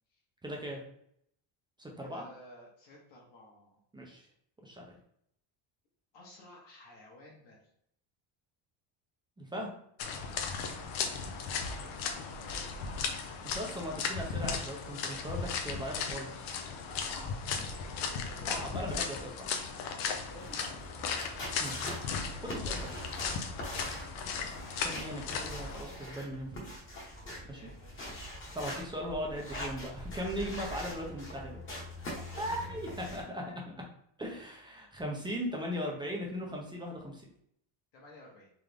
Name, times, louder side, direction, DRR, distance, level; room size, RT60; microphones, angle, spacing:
voice 1, 0.4-0.8 1.8-2.2 3.9-4.2 4.6-4.9 9.4-9.7 13.5-16.5 18.5-19.5 21.6-21.9 22.4-23.0 24.7-26.7 27.5-27.6 28.5-31.6 32.4-33.4 34.2-37.2, equal, 10° right, -1 dB, 0.5 m, -38 dB
voice 2, 2.0-3.8 6.1-7.7 11.6-13.1 16.8-18.5 20.0-21.2 27.3-28.4 32.4-33.6 37.9-38.5, left 1 dB, 60° left, -4 dB, 1.4 m, -54 dB
sound 1, 10.0-25.8, left 5 dB, 80° left, 0.8 m, -36 dB
sound 2, 20.4-33.2, left 1 dB, 25° left, 1.1 m, -43 dB
3.8 x 3.4 x 3.4 m, 0.70 s
cardioid pair, 170°, 47 cm